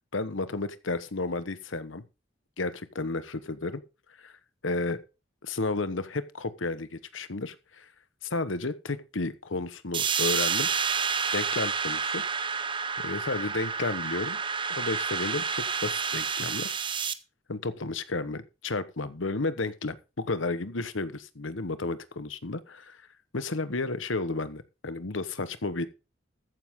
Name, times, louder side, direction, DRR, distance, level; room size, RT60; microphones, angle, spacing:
voice 1, 0.1-2.0 2.6-3.8 4.2-4.3 4.6-5.0 5.4-7.9 8.2-10.7 11.3-12.2 13.0-14.4 14.8-16.8 17.5-23.0 23.3-25.9, left 3 dB, 80° left, 1.1 m, -32 dB
sound 1, 9.9-17.1, right 6 dB, 25° right, 0.7 m, -29 dB
14.0 x 9.6 x 3.7 m
head